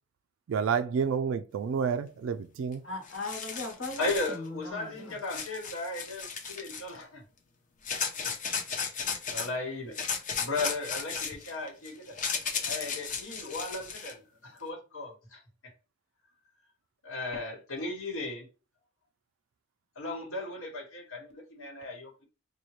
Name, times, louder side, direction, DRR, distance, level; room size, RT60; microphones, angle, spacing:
voice 1, 0.5-2.8, right 6 dB, 75° right, 0.3 m, -29 dB
sound 1, 2.7-2.8 3.0-4.3 5.3-7.0 7.8-9.5 9.9-14.1, left 6 dB, 40° left, 0.6 m, -35 dB
voice 2, 2.8-5.2, left 2 dB, 65° left, 1.2 m, -39 dB
voice 3, 4.0-7.2 7.9-8.1 9.0-10.0 10.4-12.2 12.7-15.4 17.0-18.5 19.9-22.2, left 2 dB, 90° left, 1.3 m, -36 dB
4.2 x 2.3 x 3.1 m
head